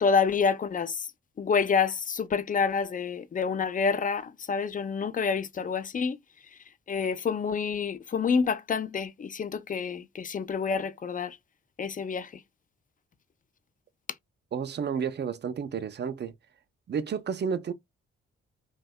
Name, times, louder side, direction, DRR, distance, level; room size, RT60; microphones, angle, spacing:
voice 1, 0.0-1.0 1.4-6.2 6.9-11.4 11.8-12.3, left 5 dB, 25° left, 0.4 m, -28 dB
voice 2, 14.5-16.3 16.9-17.7, right 6 dB, 35° right, 0.5 m, -31 dB
2.6 x 2.2 x 2.2 m
hypercardioid pair, 40°, 32 cm